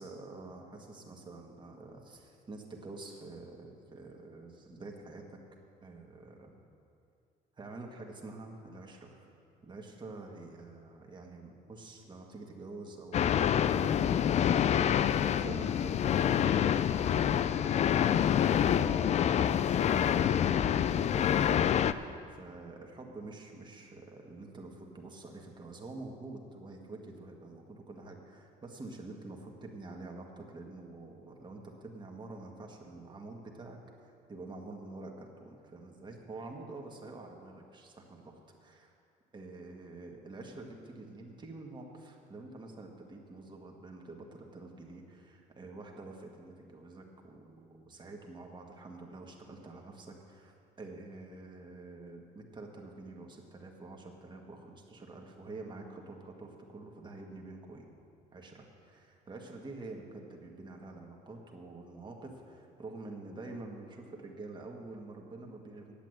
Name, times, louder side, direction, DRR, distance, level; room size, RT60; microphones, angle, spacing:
voice 1, 0.0-5.4 5.8-6.6 7.6-9.4 9.6-38.9 39.3-57.9 58.3-65.9, right 2 dB, 25° right, 1 dB, 1.7 m, -47 dB
sound 1, 13.1-21.9, left 9 dB, 40° left, 0.4 m, -27 dB
10.0 x 8.2 x 7.8 m, 2.4 s
cardioid pair, 110°, 17 cm